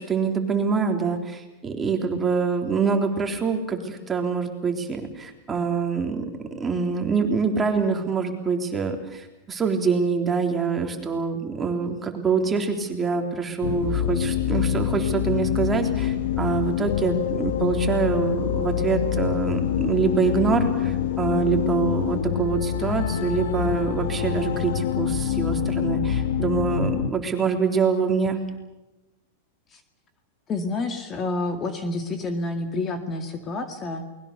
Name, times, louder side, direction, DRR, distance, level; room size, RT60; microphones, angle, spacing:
voice 1, 0.0-6.3 6.5-28.4, right 5 dB, 15° right, 3 dB, 3.5 m, -25 dB
sound 1, 13.6-27.1, left 9 dB, 75° left, 1.4 m, -25 dB
voice 2, 30.5-34.0, left 2 dB, 25° left, 6 dB, 2.1 m, -29 dB
28.5 x 21.0 x 6.8 m, 1.0 s
supercardioid pair, 135°, 0 cm